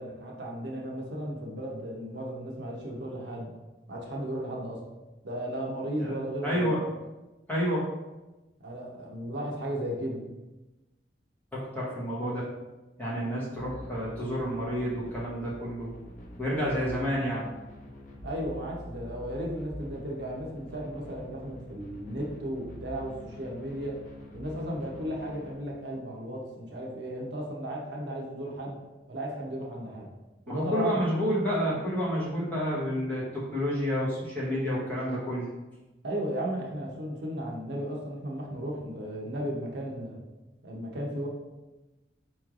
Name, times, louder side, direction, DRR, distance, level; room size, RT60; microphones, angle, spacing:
voice 1, 0.0-3.5 3.9-4.8 5.2-6.7 8.6-10.2 18.2-24.0 24.3-28.8 29.1-30.1 30.5-31.0 36.0-40.2 40.6-41.3, right 1 dB, 70° right, -1 dB, 0.7 m, -35 dB
voice 2, 6.4-6.8 7.5-7.8 11.5-12.4 13.0-15.9 16.4-17.5 30.5-35.5, equal, 10° left, -8 dB, 1.0 m, -29 dB
sound 1, 13.5-25.5, left 1 dB, 45° left, 0.6 m, -46 dB
4.5 x 3.1 x 2.4 m, 1.1 s
head